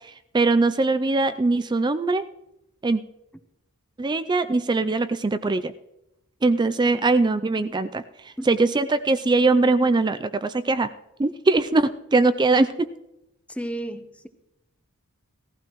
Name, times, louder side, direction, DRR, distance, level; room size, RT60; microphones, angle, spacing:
voice 1, 0.3-2.2 2.8-3.0 4.0-5.7 6.4-8.0 8.5-10.9 11.2-12.9, right 3 dB, 20° right, 11 dB, 0.4 m, -21 dB
voice 2, 13.5-14.3, right 1 dB, 5° left, 9 dB, 0.8 m, -33 dB
18.0 x 15.0 x 3.0 m, 0.87 s
head